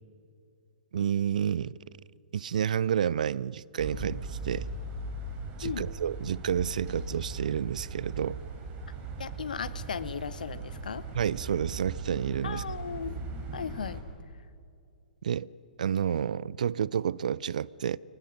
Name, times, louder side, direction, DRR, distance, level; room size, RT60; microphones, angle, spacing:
voice 1, 0.9-1.8 2.3-4.6 5.6-8.4 11.1-12.6 15.2-15.5 15.8-18.0, right 8 dB, 60° right, 0.5 m, -30 dB
sound 1, 3.8-14.0, right 3 dB, 25° right, 4.3 m, -39 dB
voice 2, 9.2-11.0 12.4-13.2 13.5-14.0, left 6 dB, 65° left, 0.9 m, -36 dB
29.5 x 24.5 x 5.3 m
figure-of-eight pair, 115°, 5 cm